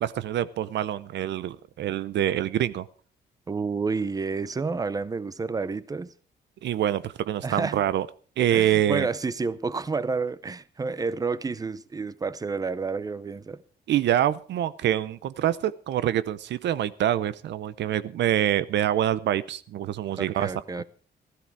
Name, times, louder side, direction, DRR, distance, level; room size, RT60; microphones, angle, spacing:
voice 1, 0.0-2.8 6.6-8.1 8.4-9.1 13.9-20.5, right 11 dB, 90° right, 0.7 m, -25 dB
voice 2, 3.5-6.1 7.4-7.8 8.5-13.6 20.2-20.8, right 4 dB, 20° right, 0.6 m, -30 dB
15.5 x 13.0 x 4.6 m
wide cardioid pair, 160°, 18 cm